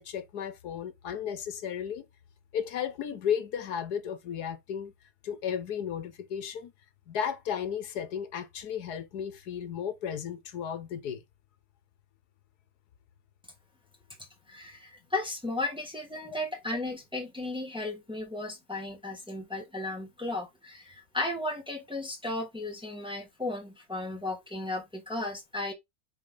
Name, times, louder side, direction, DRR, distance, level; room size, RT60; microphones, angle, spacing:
voice 1, 0.0-2.1 2.5-4.9 5.2-6.7 7.1-11.2, left 8 dB, 75° left, 1.5 m, -34 dB
voice 2, 14.5-25.7, left 2 dB, 5° right, 1.5 m, -35 dB
5.3 x 4.9 x 3.9 m
omnidirectional pair, 1.7 m